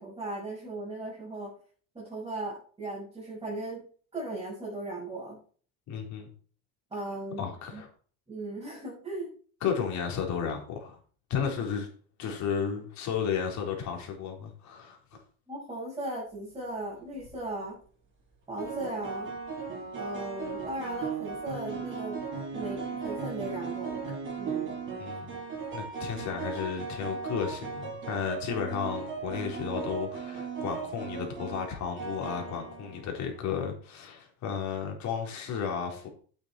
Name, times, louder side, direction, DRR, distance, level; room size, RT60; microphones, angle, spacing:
voice 1, 0.0-1.5 1.9-3.9 4.1-5.4 6.9-7.4 7.7-7.8 8.3-9.3 15.5-17.8 18.5-19.3 19.9-22.2 22.5-24.0 24.4-24.7, right 2 dB, 15° right, 6.5 m, -37 dB
voice 2, 5.9-6.3 7.4-7.9 9.6-11.0 11.3-11.9 12.2-15.2 25.0-25.3 25.7-36.1, left 7 dB, 55° left, 4.1 m, -33 dB
sound 1, 17.0-17.3 18.6-33.4, right 5 dB, 35° right, 6.5 m, -37 dB
9.7 x 8.6 x 4.6 m
cardioid pair, 140°, 35 cm